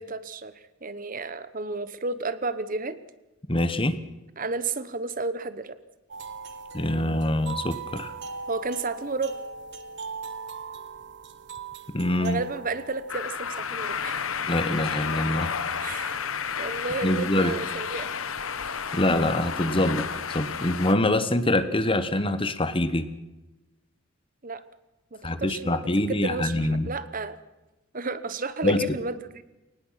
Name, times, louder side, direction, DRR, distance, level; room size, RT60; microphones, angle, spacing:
voice 1, 0.0-3.0 4.4-5.8 8.5-9.3 12.2-14.2 15.8-16.2 16.6-18.1 24.4-24.6 25.1-27.4 27.9-29.4, right 3 dB, 40° right, 14 dB, 1.1 m, -32 dB
voice 2, 3.5-4.0 6.7-8.1 11.9-12.4 14.5-15.5 17.0-17.5 18.9-20.0 20.3-23.1 25.2-26.9 28.6-29.0, left 1 dB, 25° left, 13 dB, 1.1 m, -24 dB
sound 1, 6.1-14.0, right 5 dB, 55° right, 1.5 m, -40 dB
sound 2, 13.1-20.9, left 6 dB, 80° left, 1.3 m, -31 dB
23.5 x 19.0 x 5.8 m, 1.0 s
head